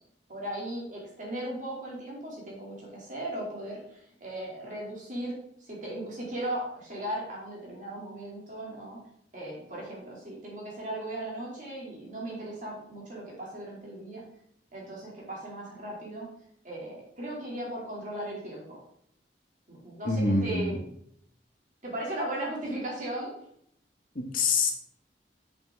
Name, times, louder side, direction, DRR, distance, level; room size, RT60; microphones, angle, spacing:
voice 1, 0.3-9.0 9.3-14.2 14.7-16.3 16.6-18.8 19.7-20.8 21.8-23.3, right 1 dB, 45° right, -4 dB, 2.5 m, -37 dB
voice 2, 20.0-20.7 24.1-24.7, left 3 dB, 50° left, 2 dB, 1.2 m, -25 dB
7.2 x 5.9 x 3.5 m, 0.70 s
head